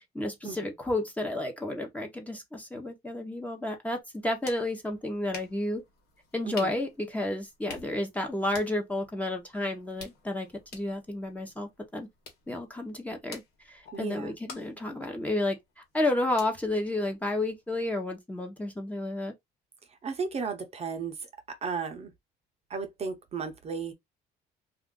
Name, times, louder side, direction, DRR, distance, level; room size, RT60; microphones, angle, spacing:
voice 1, 0.1-5.8 6.3-10.5 10.7-12.1 12.5-13.4 13.7-15.6 15.9-19.3, left 1 dB, 10° left, 0.9 m, -31 dB
sound 1, 4.0-17.7, left 4 dB, 70° left, 1.4 m, -50 dB
voice 2, 13.9-14.4 19.9-22.1 22.7-23.9, right 5 dB, 40° right, 0.7 m, -35 dB
2.5 x 2.5 x 3.7 m
cardioid pair, 110°, 17 cm